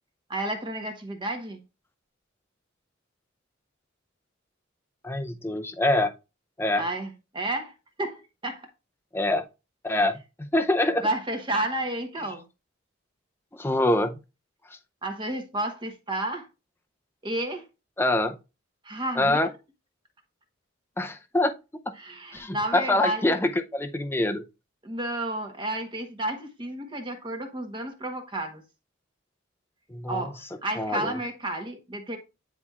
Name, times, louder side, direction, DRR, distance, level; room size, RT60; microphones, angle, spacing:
voice 1, 0.3-1.6 6.8-7.7 8.0-8.7 11.0-12.4 15.0-16.5 17.2-17.6 18.8-19.4 22.0-23.4 24.8-28.6 30.1-32.2, right 1 dB, 25° right, 1.0 m, -31 dB
voice 2, 5.0-6.1 6.6-6.8 9.1-9.4 9.8-11.1 13.5-14.2 18.0-18.4 19.2-19.5 21.0-21.5 22.3-24.4 29.9-30.3 30.7-31.2, left 1 dB, 10° left, 0.5 m, -25 dB
9.6 x 4.2 x 2.4 m
head